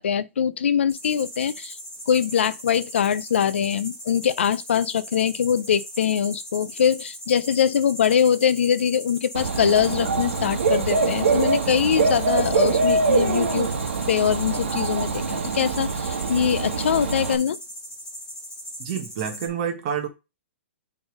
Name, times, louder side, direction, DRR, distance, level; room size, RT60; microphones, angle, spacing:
voice 1, 0.0-1.8 2.1-13.7 14.1-17.6, left 8 dB, 65° left, 0.5 m, -23 dB
sound 1, 0.9-19.5, equal, 10° left, 2.0 m, -39 dB
Dog / Bird, 9.3-17.3, right 4 dB, 60° right, 1.5 m, -24 dB
voice 2, 18.8-20.1, right 8 dB, 25° right, 1.1 m, -28 dB
6.2 x 3.4 x 5.1 m
hypercardioid pair, 180°, 7 cm